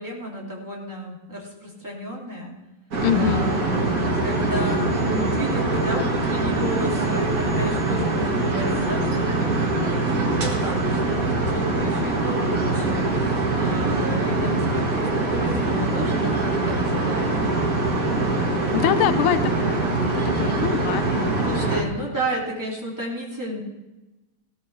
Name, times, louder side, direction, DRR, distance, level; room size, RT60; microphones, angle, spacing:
voice 1, 0.0-2.5 3.1-3.9 4.2-17.3 20.4-20.8 21.4-23.6, equal, 10° right, -4 dB, 2.5 m, -32 dB
sound 1, 2.9-21.8, right 2 dB, 40° right, 2.1 m, -23 dB
voice 2, 3.0-3.5 18.7-21.6, left 10 dB, 90° left, 12 dB, 1.6 m, -25 dB
16.5 x 13.5 x 3.3 m, 1.1 s
omnidirectional pair, 2.3 m